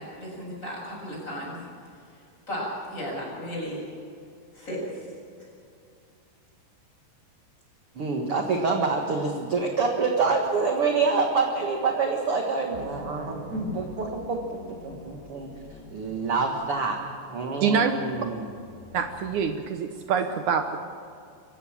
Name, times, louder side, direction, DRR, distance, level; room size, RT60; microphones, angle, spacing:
voice 1, 0.0-1.6 2.5-3.8 4.5-5.1 13.5-13.9, equal, 15° left, -3 dB, 7.8 m, -34 dB
voice 2, 8.0-15.5 15.9-17.0 17.3-18.4, right 4 dB, 55° right, 2 dB, 1.6 m, -26 dB
sound 1, 12.7-19.7, left 3 dB, 85° left, 6.0 m, -45 dB
voice 3, 17.6-18.0 18.9-20.8, right 6 dB, 90° right, 6 dB, 1.7 m, -25 dB
26.5 x 15.0 x 7.4 m, 2.5 s
omnidirectional pair, 4.8 m